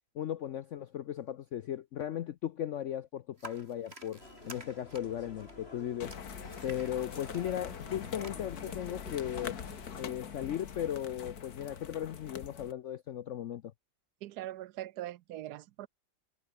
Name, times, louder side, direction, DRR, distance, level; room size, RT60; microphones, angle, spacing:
voice 1, 0.1-6.2 6.6-9.6 10.0-13.7, left 10 dB, 75° left, 0.6 m, -37 dB
sound 1, 3.4-8.3, right 1 dB, 35° right, 7.0 m, -52 dB
sound 2, 4.2-10.1, left 2 dB, 35° left, 4.6 m, -51 dB
sound 3, 6.0-12.7, left 7 dB, 60° left, 1.9 m, -44 dB
voice 2, 14.2-15.9, right 14 dB, 70° right, 1.0 m, -41 dB
omnidirectional pair, 2.0 m